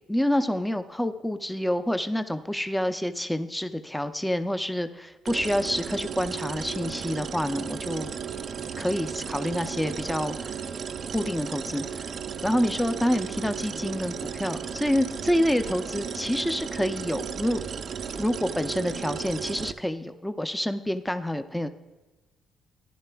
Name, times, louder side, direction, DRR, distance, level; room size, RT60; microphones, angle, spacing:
voice 1, 0.1-8.1 8.8-10.6 11.1-12.1 12.4-17.6 18.1-21.7, equal, 5° left, 9 dB, 0.5 m, -27 dB
sound 1, 5.3-19.7, right 7 dB, 55° right, 0.4 m, -35 dB
13.5 x 10.5 x 2.3 m, 1.2 s
cardioid pair, 90°, 0 cm